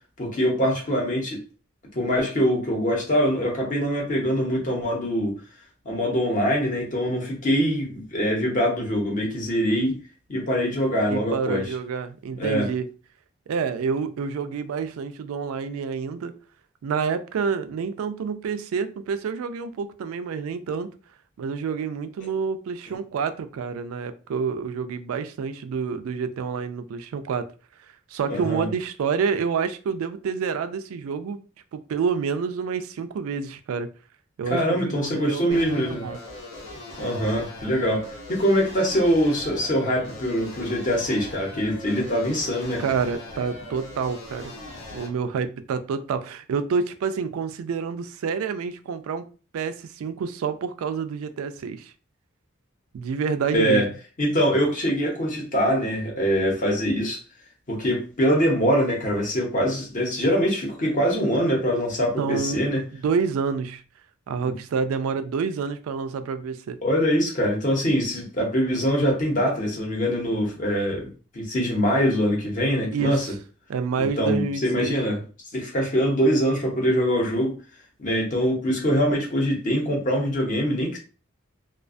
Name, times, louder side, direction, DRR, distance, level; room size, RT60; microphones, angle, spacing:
voice 1, 0.2-1.4 1.9-5.3 5.8-10.0 10.3-11.7 12.4-12.7 22.9-23.0 28.3-28.7 34.5-36.0 37.0-42.8 53.5-53.9 54.2-57.2 57.7-62.8 64.4-64.5 66.8-73.3 74.0-75.2 75.5-77.6 78.0-81.0, equal, 40° left, -1 dB, 0.8 m, -23 dB
voice 2, 11.1-12.9 13.5-16.3 16.8-20.9 21.4-27.4 28.1-31.4 31.7-33.9 34.4-36.2 42.8-44.5 44.9-49.2 49.5-51.9 52.9-53.9 62.2-62.6 62.9-63.8 64.3-66.8 72.9-73.3 73.7-74.9, right 5 dB, 80° right, 10 dB, 0.3 m, -28 dB
sound 1, 35.5-45.1, left 1 dB, 70° left, 0.7 m, -40 dB
2.4 x 2.2 x 2.5 m, 0.36 s
head